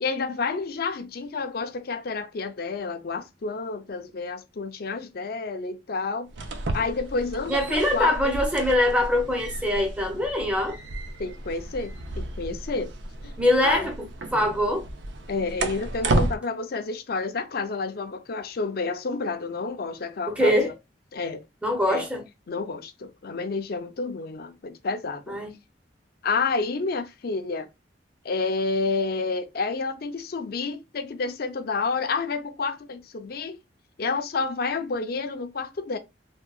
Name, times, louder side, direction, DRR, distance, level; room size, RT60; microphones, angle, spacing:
voice 1, 0.0-6.3 6.7-8.2 11.2-12.9 13.2-13.3 13.6-13.9 15.3-20.7 21.1-21.4 21.9-22.0 22.5-25.4 26.2-27.7 28.2-33.6 34.0-36.0, left 4 dB, 60° left, 0.5 m, -29 dB
sound 1, 6.3-16.3, right 2 dB, 85° right, 0.5 m, -32 dB
voice 2, 7.5-10.8 13.4-14.9 20.3-20.7 21.6-22.2 25.3-25.5, left 1 dB, 5° right, 0.6 m, -23 dB
3.6 x 2.2 x 2.3 m
head